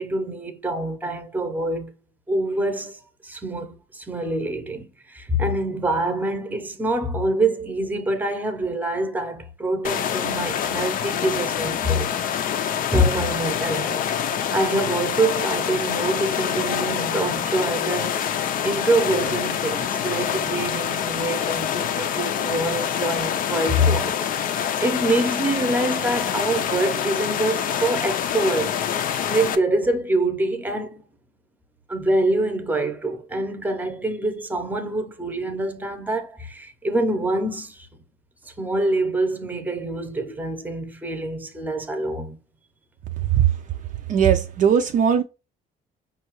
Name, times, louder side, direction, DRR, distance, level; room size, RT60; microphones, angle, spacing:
voice 1, 0.0-1.9 2.3-12.2 12.9-14.0 14.5-18.2 18.6-28.8 29.3-31.0 31.9-37.9 38.5-42.4, right 1 dB, 10° right, 0.7 m, -25 dB
sound 1, 9.8-29.6, left 9 dB, 55° left, 0.5 m, -26 dB
voice 2, 44.1-45.2, right 8 dB, 50° right, 0.4 m, -18 dB
5.3 x 2.3 x 3.0 m
cardioid pair, 110°, 17 cm